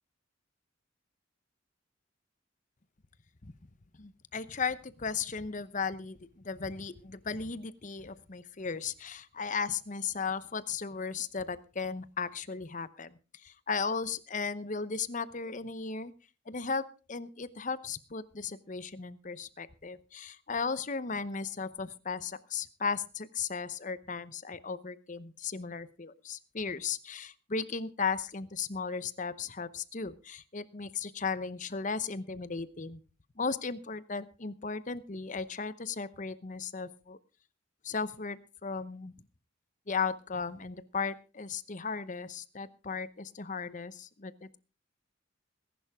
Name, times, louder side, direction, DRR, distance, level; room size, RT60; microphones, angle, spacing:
voice 1, 4.0-13.1 13.4-16.1 16.5-16.8 17.1-33.0 33.4-37.2 37.8-39.1 39.9-44.6, left 5 dB, 40° left, 15 dB, 0.9 m, -36 dB
20.0 x 11.0 x 3.6 m, 0.33 s
head